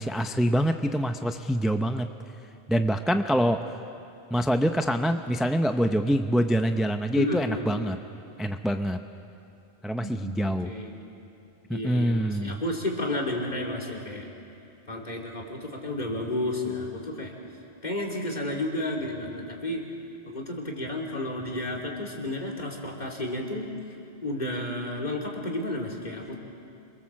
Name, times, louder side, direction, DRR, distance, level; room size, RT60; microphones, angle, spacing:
voice 1, 0.0-2.1 2.7-3.6 4.3-8.0 8.4-9.0 9.8-10.7 11.7-12.6, equal, ahead, 6 dB, 0.5 m, -25 dB
voice 2, 7.2-7.7 10.0-10.3 10.6-11.0 11.7-14.3 14.9-17.3 17.8-19.9 20.3-23.7 24.2-26.4, left 1 dB, 40° left, -1 dB, 3.3 m, -32 dB
26.5 x 23.0 x 7.6 m, 2.7 s
omnidirectional pair, 1.1 m